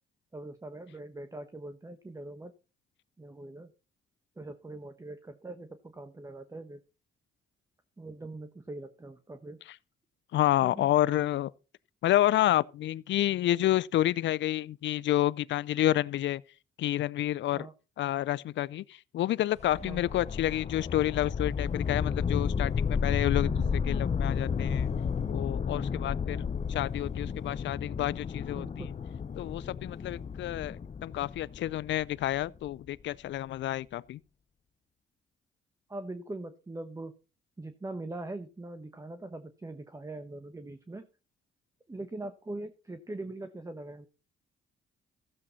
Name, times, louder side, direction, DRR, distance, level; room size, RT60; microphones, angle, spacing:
voice 1, 0.3-2.5 3.2-3.7 4.4-6.8 8.0-9.6 10.6-10.9 17.5-17.7 19.8-20.0 23.5-23.8 25.9-26.4 28.5-28.9 35.9-37.1 37.6-41.1 41.9-44.1, right 2 dB, 15° right, 1.1 m, -42 dB
voice 2, 10.3-11.5 12.0-16.4 16.8-17.7 18.0-23.5 23.9-24.9 25.3-26.4 26.7-28.9 29.4-34.2, left 13 dB, 70° left, 0.5 m, -29 dB
sound 1, 19.6-32.7, left 6 dB, 35° left, 0.7 m, -32 dB
15.0 x 7.6 x 4.1 m
cardioid pair, 90°, 20 cm